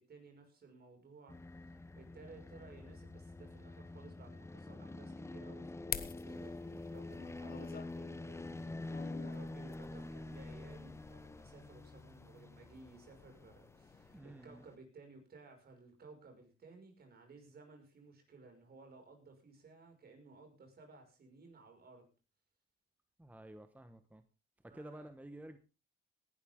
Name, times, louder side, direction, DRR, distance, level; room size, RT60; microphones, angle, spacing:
voice 1, 0.0-1.4 1.6-22.1 24.7-25.1, right 3 dB, 50° right, 3 dB, 6.0 m, -58 dB
sound 1, 1.3-14.7, left 2 dB, 15° left, 0.8 m, -47 dB
sound 2, 5.9-14.2, left 8 dB, 50° left, 1.2 m, -50 dB
voice 2, 14.1-14.7 23.2-24.2 24.6-25.6, right 1 dB, 10° right, 9 dB, 1.2 m, -51 dB
18.5 x 11.5 x 3.8 m, 0.32 s
cardioid pair, 90°, 20 cm